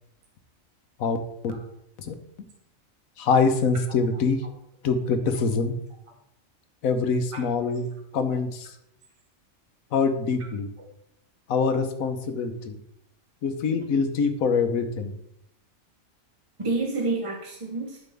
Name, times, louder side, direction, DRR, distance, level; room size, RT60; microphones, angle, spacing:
voice 1, 3.2-4.4 4.8-5.7 6.8-7.8 8.1-8.7 9.9-10.7 11.5-12.8 13.4-15.2, left 4 dB, 90° left, 8 dB, 1.3 m, -24 dB
voice 2, 7.3-7.7 8.2-8.3 10.4-10.5 10.8-10.9 16.6-18.0, right 3 dB, 30° right, 2 dB, 0.8 m, -30 dB
12.0 x 5.1 x 3.5 m, 0.78 s
omnidirectional pair, 1.4 m